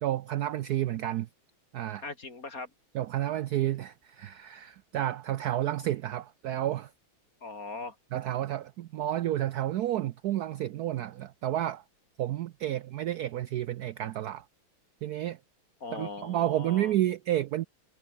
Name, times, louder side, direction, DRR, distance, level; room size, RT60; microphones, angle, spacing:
voice 1, 0.0-1.3 1.7-2.0 2.9-6.9 8.1-11.8 12.2-14.4 15.0-15.4 15.9-17.7, right 13 dB, 90° right, 0.8 m, -30 dB
voice 2, 2.0-2.7 7.4-7.9 15.8-16.9, left 3 dB, 40° left, 4.5 m, -40 dB
omnidirectional pair, 2.3 m